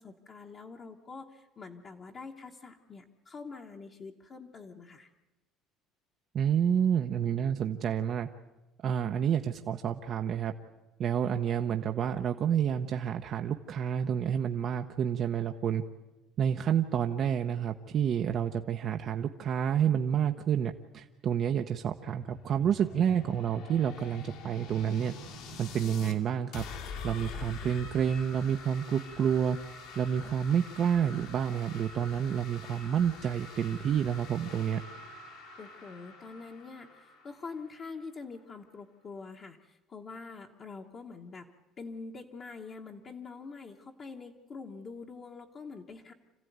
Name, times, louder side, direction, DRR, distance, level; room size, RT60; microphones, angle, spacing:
voice 1, 0.0-5.1 35.6-41.5 41.8-46.1, left 4 dB, 30° left, 0 dB, 1.2 m, -45 dB
voice 2, 6.3-8.3 8.8-10.5 11.0-15.8 16.4-25.1 25.6-26.6 27.0-29.6 30.0-34.8, right 8 dB, 40° right, 5 dB, 0.8 m, -29 dB
sound 1, 21.6-26.2 26.5-38.1, left 4 dB, 65° left, 2.4 m, -45 dB
26.5 x 15.5 x 9.4 m, 1.0 s
cardioid pair, 160°, 0 cm